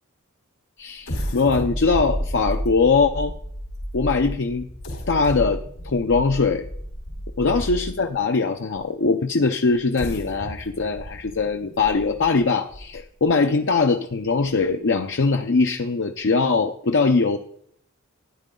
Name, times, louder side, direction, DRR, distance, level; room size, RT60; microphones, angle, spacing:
voice 1, 0.8-3.3 3.9-4.7 5.1-6.7 7.4-17.4, left 4 dB, 60° left, 5 dB, 0.7 m, -21 dB
sound 1, 1.0-8.2 8.8-8.9 9.7-13.3 13.7-13.8 14.3-14.5, equal, 80° left, 3.8 m, -32 dB
13.0 x 10.0 x 3.8 m, 0.67 s
head